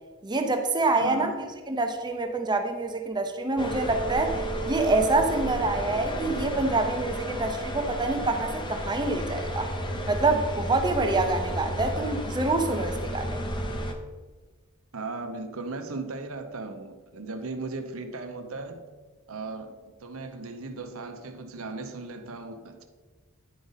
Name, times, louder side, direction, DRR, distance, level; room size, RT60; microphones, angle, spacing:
voice 1, 0.2-1.3 1.7-4.4 4.7-9.7 10.1-13.4, right 2 dB, 20° right, 0.6 m, -26 dB
voice 2, 1.0-1.4 14.9-18.9 19.3-22.8, right 3 dB, 80° right, 0.8 m, -37 dB
sound 1, 3.6-13.9, equal, 20° left, 0.7 m, -32 dB
10.5 x 5.1 x 4.0 m
head